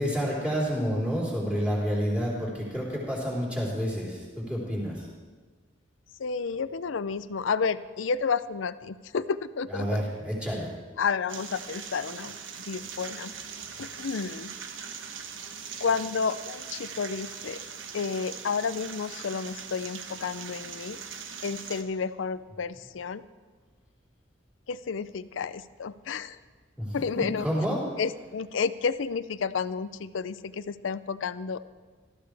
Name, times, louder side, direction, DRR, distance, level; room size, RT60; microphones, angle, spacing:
voice 1, 0.0-5.1 9.7-10.7 26.8-27.8, equal, 5° right, -6 dB, 3.9 m, -29 dB
voice 2, 6.2-10.0 11.0-12.4 12.7-13.3 13.8-14.5 15.8-17.6 17.9-21.0 21.4-23.2 24.7-26.4 26.9-27.5 28.0-31.7, left 5 dB, 75° left, 15 dB, 0.5 m, -31 dB
sound 1, 11.3-21.8, right 6 dB, 80° right, 1.1 m, -41 dB
18.5 x 13.5 x 3.4 m, 1.4 s
head